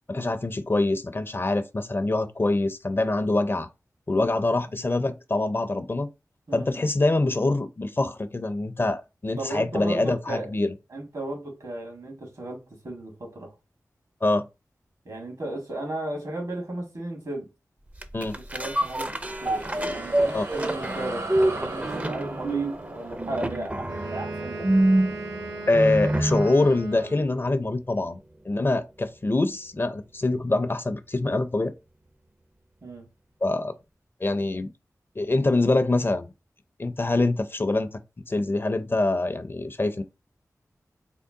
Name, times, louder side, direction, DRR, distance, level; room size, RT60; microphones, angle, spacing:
voice 1, 0.1-3.7 4.1-6.1 6.5-10.7 14.2-14.4 18.1-18.3 20.3-20.4 25.7-28.2 28.4-31.7 33.4-33.7 34.2-34.7 35.2-36.3 36.8-37.9 38.3-40.0, left 2 dB, 35° left, 0.5 m, -24 dB
voice 2, 9.4-10.5 10.9-13.5 15.1-17.5 18.2-19.1 19.4-24.7 32.8-33.1, right 1 dB, 70° right, 1.9 m, -35 dB
sound 1, 18.0-26.6 27.0-27.1, right 1 dB, 20° right, 0.5 m, -26 dB
sound 2, 19.1-25.8, right 2 dB, 55° right, 0.8 m, -39 dB
Wind instrument woodwind instrument, 23.8-27.6, right 2 dB, 85° right, 1.3 m, -38 dB
3.7 x 2.1 x 3.6 m
cardioid pair, 45°, 6 cm